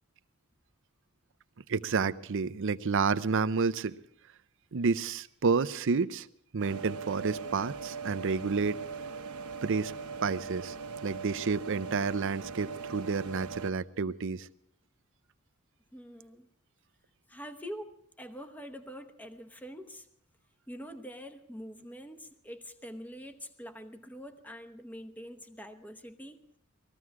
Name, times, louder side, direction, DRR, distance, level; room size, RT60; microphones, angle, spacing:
voice 1, 1.7-4.0 4.7-6.3 6.5-8.8 9.6-9.9 10.2-10.8 11.0-14.5, right 5 dB, 60° right, 14 dB, 0.6 m, -30 dB
sound 1, 6.6-13.7, right 5 dB, 85° right, 1.0 m, -40 dB
voice 2, 15.9-16.5 17.3-20.1 20.7-26.4, equal, 10° left, 7 dB, 0.9 m, -45 dB
20.5 x 14.5 x 4.7 m, 0.73 s
head